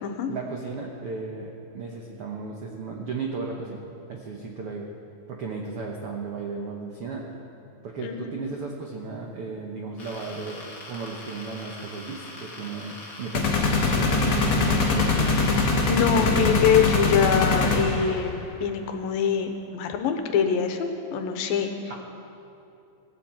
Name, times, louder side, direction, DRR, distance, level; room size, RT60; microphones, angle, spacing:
voice 1, 0.3-3.8 4.1-4.9 5.3-7.3 7.8-10.6 10.9-15.4 21.9-22.0, right 4 dB, 75° right, 0 dB, 1.3 m, -35 dB
voice 2, 8.0-8.3 15.8-21.7, left 7 dB, 80° left, 6 dB, 2.6 m, -24 dB
sound 1, 10.0-15.7, left 2 dB, 35° left, 1.4 m, -42 dB
sound 2, 13.3-18.2, left 3 dB, 55° left, 2.4 m, -22 dB
17.0 x 15.5 x 4.4 m, 2.7 s
omnidirectional pair, 4.2 m